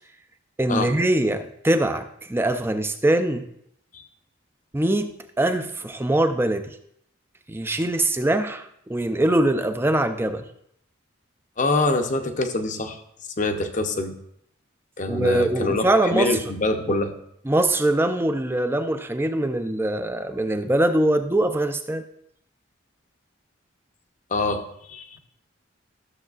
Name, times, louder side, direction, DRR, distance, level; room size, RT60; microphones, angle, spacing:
voice 1, 0.6-3.4 4.7-5.1 5.4-6.8 7.5-10.4 15.1-16.4 17.5-22.0, right 1 dB, 10° right, 8 dB, 0.4 m, -22 dB
voice 2, 11.6-13.0 13.4-14.1 15.0-17.1 24.3-25.2, left 2 dB, 40° left, 6 dB, 0.7 m, -25 dB
13.0 x 7.0 x 2.4 m, 0.72 s
head